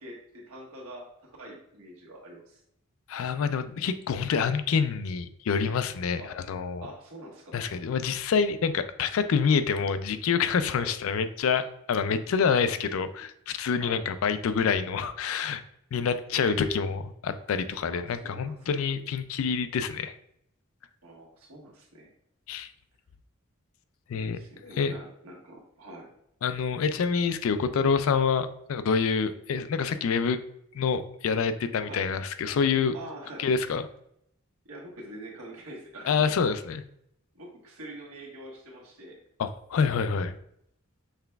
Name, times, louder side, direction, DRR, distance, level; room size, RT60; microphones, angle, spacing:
voice 1, 0.0-2.6 6.2-6.3 6.8-7.6 10.7-10.9 13.8-14.0 16.3-16.8 17.9-18.8 21.0-22.1 24.1-26.1 31.8-32.1 32.9-33.6 34.6-36.4 37.3-39.2, equal, 90° right, -2 dB, 1.3 m, -44 dB
voice 2, 3.1-6.2 6.5-6.9 7.5-15.6 15.9-20.1 22.5-22.7 24.1-24.4 24.8-24.9 26.4-30.4 30.7-32.9 33.4-33.8 36.1-36.8 39.4-40.3, left 6 dB, 70° left, 11 dB, 0.3 m, -27 dB
5.7 x 3.3 x 2.3 m, 0.74 s
head